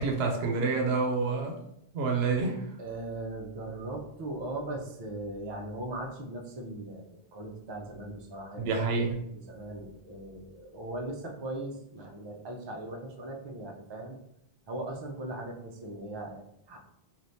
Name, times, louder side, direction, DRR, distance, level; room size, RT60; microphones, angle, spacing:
voice 1, 0.0-1.5 1.9-2.6 8.6-9.2, right 4 dB, 80° right, 2 dB, 0.8 m, -28 dB
voice 2, 2.8-8.8 9.2-14.2 14.7-16.8, right 2 dB, 40° right, 0 dB, 0.4 m, -39 dB
3.3 x 2.5 x 2.6 m, 0.76 s
omnidirectional pair, 1.0 m